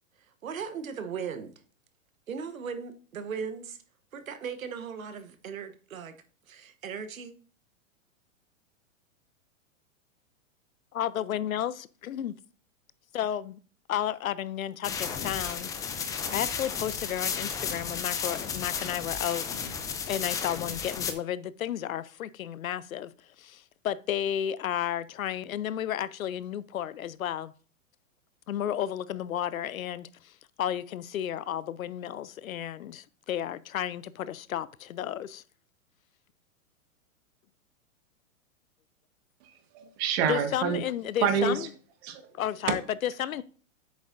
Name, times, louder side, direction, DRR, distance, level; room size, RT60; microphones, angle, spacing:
voice 1, 0.4-1.6 2.3-3.8 4.1-6.1 6.5-7.3, right 6 dB, 85° right, 1.1 m, -37 dB
voice 2, 10.9-12.3 13.1-13.6 13.9-15.7 16.3-19.5 20.1-23.1 23.4-27.5 28.5-35.4 40.3-41.7 42.3-43.4, left 10 dB, 90° left, 0.6 m, -32 dB
sound 1, 14.8-21.1, left 6 dB, 10° left, 0.3 m, -33 dB
voice 3, 39.4-40.8 41.2-41.7 42.0-42.3 42.6-42.7, right 7 dB, 50° right, 1.5 m, -28 dB
8.1 x 6.3 x 2.6 m
hypercardioid pair, 120°, 40 cm